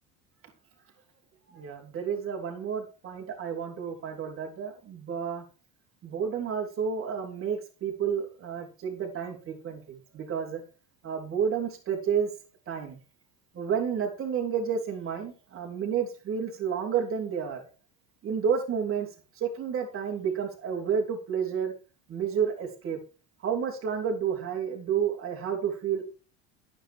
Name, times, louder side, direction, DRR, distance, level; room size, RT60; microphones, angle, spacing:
voice 1, 1.5-5.4 6.0-10.6 11.0-12.3 12.7-13.0 13.5-17.7 18.2-19.1 19.4-21.7 22.1-23.0 23.4-26.0, right 7 dB, 35° right, 2 dB, 3.6 m, -30 dB
10.5 x 9.0 x 4.7 m, 0.34 s
supercardioid pair, 120°, 35 cm